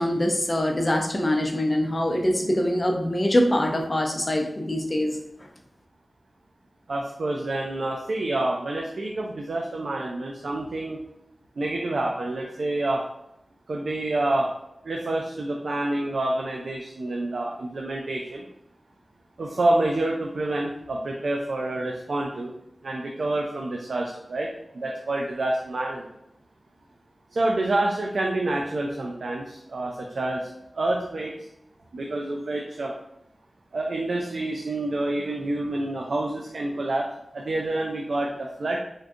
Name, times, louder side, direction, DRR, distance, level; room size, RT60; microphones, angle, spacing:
voice 1, 0.0-5.1, left 1 dB, 35° left, 3 dB, 0.5 m, -24 dB
voice 2, 6.9-11.0 11.6-13.0 13.7-14.5 14.8-18.4 19.4-22.5 22.8-24.5 24.7-26.0 27.3-30.5 30.8-31.4 31.9-32.9 33.7-37.1 37.3-38.8, right 2 dB, 80° right, 0 dB, 0.3 m, -27 dB
3.6 x 2.6 x 2.3 m, 0.82 s
wide cardioid pair, 55°, 0 cm